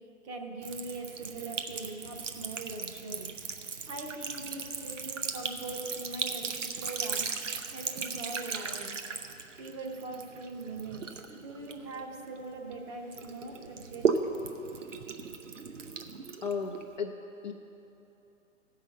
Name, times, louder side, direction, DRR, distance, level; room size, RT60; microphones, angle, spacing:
voice 1, 0.2-3.3 3.9-7.3 7.7-8.9 9.6-14.2, right 3 dB, 25° right, 1 dB, 0.9 m, -41 dB
Sink (filling or washing) / Trickle dribble, 0.6-12.7 13.1-17.0, right 5 dB, 65° right, 0.8 m, -36 dB
voice 2, 16.4-17.2 17.4-17.5, left 5 dB, 35° left, 3 dB, 0.5 m, -34 dB
15.0 x 5.7 x 7.4 m, 3.0 s
figure-of-eight pair, 125°, 41 cm